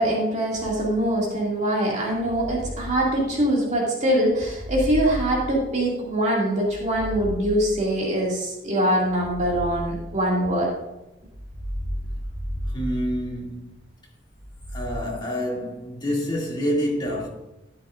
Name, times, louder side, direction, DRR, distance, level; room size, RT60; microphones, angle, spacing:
voice 1, 0.0-10.7, right 1 dB, 40° right, 2.4 m, -23 dB
sound 1, 0.5-1.3 2.0-3.7 4.3-6.1 6.6-8.2 9.0-10.6 11.2-13.7 14.3-14.9, equal, ahead, 3.7 m, -34 dB
voice 2, 12.7-13.6 14.7-17.3, equal, 25° left, 2.5 m, -27 dB
13.0 x 10.5 x 2.5 m
head